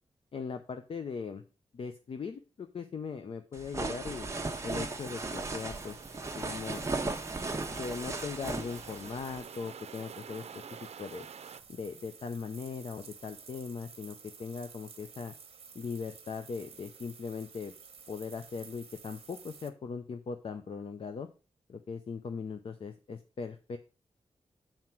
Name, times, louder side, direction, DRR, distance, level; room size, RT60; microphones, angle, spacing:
voice 1, 0.3-1.4 1.7-4.3 4.6-6.8 7.8-10.6 11.0-11.3 11.7-15.3 15.7-17.7 18.1-21.3 21.7-23.8, left 5 dB, 55° left, 7 dB, 0.7 m, -39 dB
sound 1, 3.5-9.4, right 3 dB, 25° right, 1.0 m, -36 dB
sound 2, 4.0-19.7, right 6 dB, 60° right, 1.1 m, -53 dB
sound 3, 5.8-11.6, right 7 dB, 75° right, 0.6 m, -49 dB
7.8 x 4.4 x 5.9 m, 0.33 s
wide cardioid pair, 125°, 11 cm